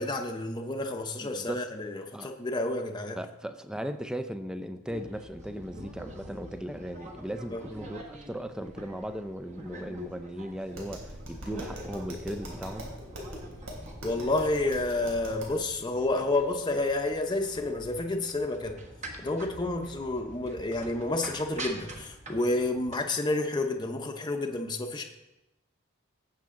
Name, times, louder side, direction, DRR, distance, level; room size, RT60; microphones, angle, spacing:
voice 1, 0.0-3.2 7.5-7.6 14.0-18.8 19.2-25.0, left 2 dB, 20° left, 3 dB, 0.8 m, -30 dB
voice 2, 1.2-1.6 2.1-2.3 3.2-13.0, equal, 5° right, 8 dB, 0.5 m, -37 dB
sound 1, 4.9-23.0, right 1 dB, 35° right, 1.4 m, -46 dB
Tap, 10.7-15.6, equal, 80° right, 3.5 m, -42 dB
17.5 x 7.4 x 3.8 m, 0.95 s
head